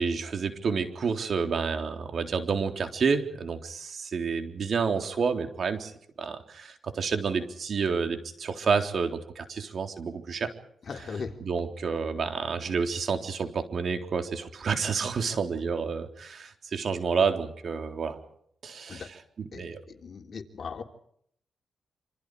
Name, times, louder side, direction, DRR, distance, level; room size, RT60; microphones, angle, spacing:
voice 1, 0.0-5.9 6.2-10.5 11.4-18.2 18.6-19.1 19.4-19.8, right 5 dB, 65° right, 6 dB, 3.8 m, -29 dB
voice 2, 10.8-11.4 18.9-19.1 19.5-20.8, left 5 dB, 60° left, 4 dB, 3.6 m, -38 dB
27.5 x 27.0 x 5.0 m, 0.68 s
cardioid pair, 85°, 0 cm